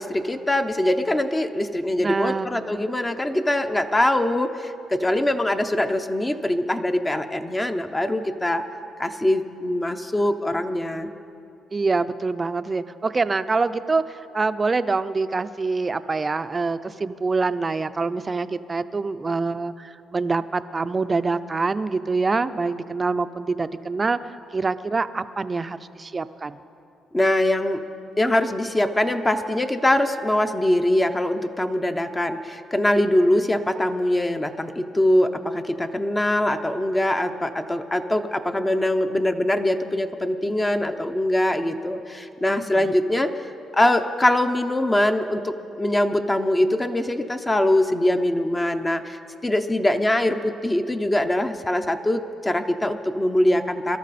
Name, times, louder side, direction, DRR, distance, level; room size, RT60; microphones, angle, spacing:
voice 1, 0.0-8.6 9.0-11.1 27.1-27.8 28.2-54.0, left 1 dB, 15° left, 7 dB, 0.7 m, -23 dB
voice 2, 2.0-2.5 11.7-26.6 42.7-42.9, right 4 dB, 30° right, 12 dB, 0.5 m, -25 dB
23.0 x 13.0 x 4.2 m, 2.6 s
cardioid pair, 90°, 0 cm